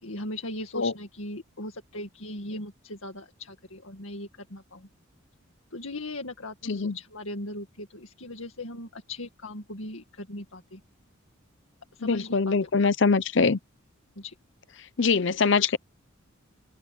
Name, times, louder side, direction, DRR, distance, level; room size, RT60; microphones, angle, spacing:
voice 1, 0.0-4.9 5.7-10.8 11.9-12.9 14.2-14.3, left 1 dB, 80° left, 2.1 m, -39 dB
voice 2, 12.0-13.6 15.0-15.8, left 4 dB, 60° left, 0.7 m, -23 dB
open air
head